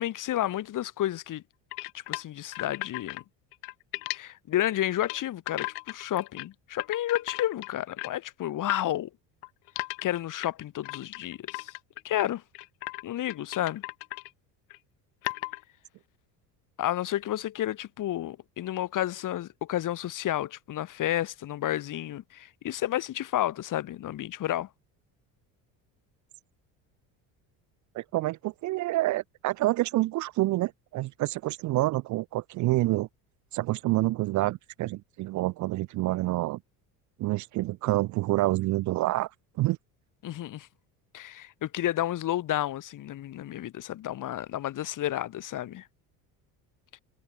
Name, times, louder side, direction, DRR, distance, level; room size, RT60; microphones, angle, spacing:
voice 1, 0.0-1.4 1.9-3.2 4.1-9.1 10.0-11.8 12.0-12.4 13.0-13.8 16.8-24.7 40.2-40.7 41.1-45.9, left 13 dB, 50° left, 1.9 m, -31 dB
sound 1, 1.7-3.2 3.5-4.2 4.8-5.2 5.5-6.5 6.8-8.2 8.7-8.8 9.4-12.3 12.6-13.0 13.3-14.3 14.7-14.8 15.2-15.6, left 33 dB, 85° left, 1.3 m, -36 dB
voice 2, 27.9-33.1 33.5-36.6 37.2-39.3 39.6-39.8, right 18 dB, 45° right, 0.5 m, -27 dB
supercardioid pair, 100°, 41 cm